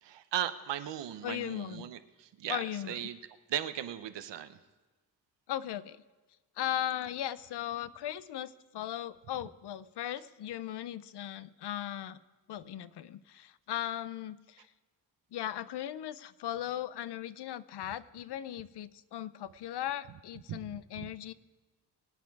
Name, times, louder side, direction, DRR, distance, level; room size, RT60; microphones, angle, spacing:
voice 1, 0.0-3.2 3.5-4.6 20.5-21.1, right 11 dB, 90° right, 11 dB, 0.9 m, -37 dB
voice 2, 1.2-1.9 2.5-3.1 5.5-6.0 6.6-12.2 12.5-14.7 15.3-21.3, left 11 dB, 70° left, 16 dB, 0.6 m, -38 dB
23.0 x 8.5 x 4.7 m, 1.2 s
cardioid pair, 110°, 41 cm